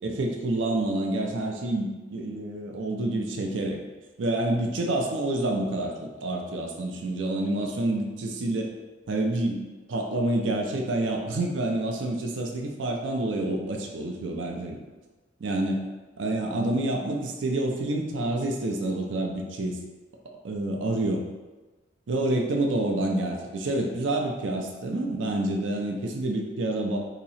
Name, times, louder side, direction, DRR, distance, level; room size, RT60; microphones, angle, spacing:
voice 1, 0.0-3.8 4.2-8.7 9.1-14.8 15.4-15.8 16.2-19.8 20.4-21.3 22.1-27.0, right 2 dB, 75° right, 1 dB, 0.5 m, -28 dB
2.9 x 2.8 x 4.1 m, 1.2 s
head